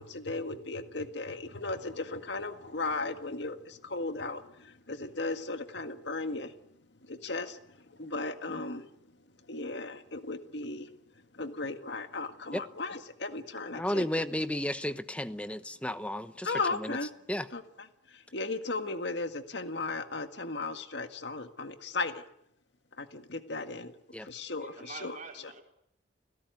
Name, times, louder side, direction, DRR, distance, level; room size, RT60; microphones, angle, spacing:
voice 1, 0.0-6.6 7.0-8.9 9.5-10.9 11.3-14.1 16.4-17.1 17.5-17.6 18.1-22.2 23.0-23.9 24.2-25.1, left 3 dB, 65° left, 1.8 m, -36 dB
voice 2, 13.7-17.0 17.3-17.5 24.1-24.3, left 1 dB, 5° left, 1.0 m, -33 dB
voice 3, 24.6-25.6, right 4 dB, 40° right, 4.6 m, -46 dB
29.5 x 17.5 x 9.4 m
head